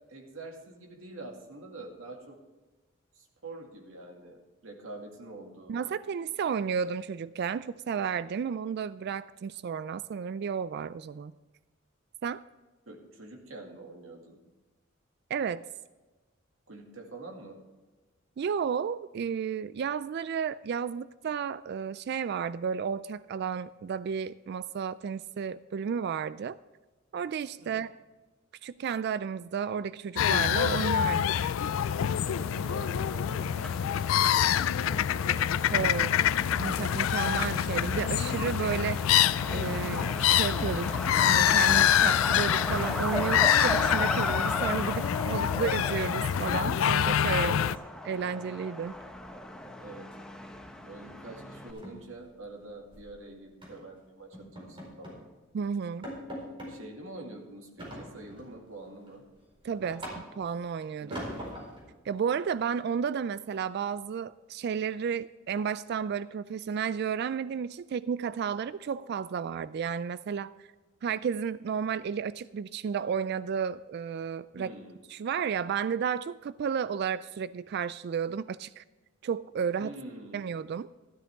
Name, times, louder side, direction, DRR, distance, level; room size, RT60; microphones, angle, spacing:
voice 1, 0.1-2.4 3.1-5.8 12.9-14.4 16.7-17.6 27.6-27.8 32.2-35.8 45.3-45.6 47.4-47.7 49.8-50.1 50.8-55.2 56.7-59.2 61.0-61.5 74.5-75.0 79.8-80.6, right 2 dB, 80° right, 1 dB, 2.2 m, -46 dB
voice 2, 5.7-11.3 12.2-12.4 15.3-15.7 18.4-26.6 27.1-27.9 28.6-31.5 35.7-36.1 36.6-39.2 39.5-40.9 41.2-47.6 48.1-48.9 55.5-56.1 59.6-60.1 60.4-61.2 62.1-70.5 71.0-74.7 75.1-78.8 79.2-79.9 80.3-80.9, right 7 dB, 55° right, 16 dB, 0.3 m, -32 dB
sound 1, 30.2-47.7, left 10 dB, 85° left, 0.3 m, -26 dB
Truck, 31.7-51.7, left 1 dB, 5° left, 0.9 m, -38 dB
sound 2, 48.9-49.7 50.0-50.2 50.5-50.7 51.0-51.1 51.5-53.1 53.6-53.9 54.3-55.3 55.6-55.7 56.0-56.8 57.8-58.5 59.0-60.6 61.1-61.9, equal, 25° right, 4.6 m, -42 dB
13.0 x 13.0 x 3.5 m, 1.2 s
head